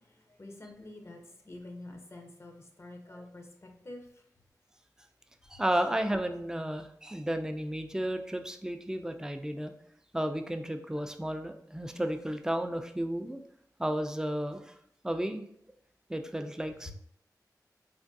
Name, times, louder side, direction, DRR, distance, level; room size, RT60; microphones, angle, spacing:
voice 1, 0.4-1.2 1.5-3.4 3.8-4.0, left 2 dB, 40° left, 3 dB, 0.6 m, -46 dB
voice 2, 5.5-9.7 10.1-13.4 13.8-14.7 15.0-15.4 16.1-16.9, right 1 dB, 10° right, 6 dB, 0.3 m, -33 dB
3.4 x 2.2 x 2.6 m, 0.69 s
cardioid pair, 55°, 7 cm